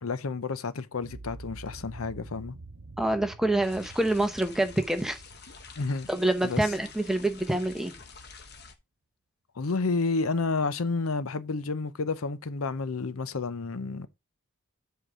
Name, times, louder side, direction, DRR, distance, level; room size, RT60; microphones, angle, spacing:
voice 1, 0.0-2.6 5.8-6.1 6.4-6.6 9.6-14.1, left 3 dB, 75° left, 0.7 m, -30 dB
sound 1, 1.0-7.1, right 2 dB, 60° right, 0.8 m, -47 dB
voice 2, 3.0-5.2 6.1-7.9, right 1 dB, ahead, 0.8 m, -26 dB
sound 2, 3.6-8.8, left 5 dB, 50° left, 1.2 m, -48 dB
7.8 x 4.7 x 4.8 m
head